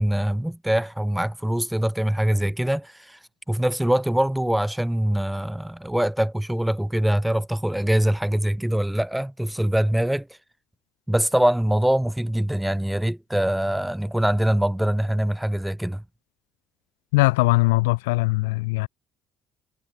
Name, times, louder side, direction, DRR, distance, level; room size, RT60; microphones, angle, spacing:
voice 1, 0.0-3.2 3.5-10.3 11.1-16.0, right 1 dB, 5° right, 3.7 m, -23 dB
voice 2, 17.1-18.9, left 24 dB, 85° left, 0.4 m, -20 dB
supercardioid pair, 70°, 0 cm